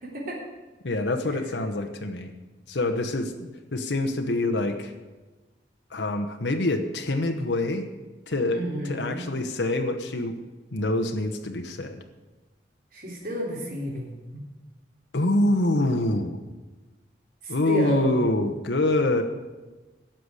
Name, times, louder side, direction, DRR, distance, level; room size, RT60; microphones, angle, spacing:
voice 1, 0.0-0.4 8.5-9.2 12.9-14.1 17.4-18.3, right 1 dB, 50° right, -2 dB, 3.5 m, -31 dB
voice 2, 0.8-2.3 2.7-4.9 5.9-7.9 8.3-10.4 10.7-12.0 15.1-16.4 17.5-19.2, left 2 dB, 85° left, 5 dB, 1.1 m, -25 dB
12.0 x 6.7 x 9.7 m, 1.2 s
head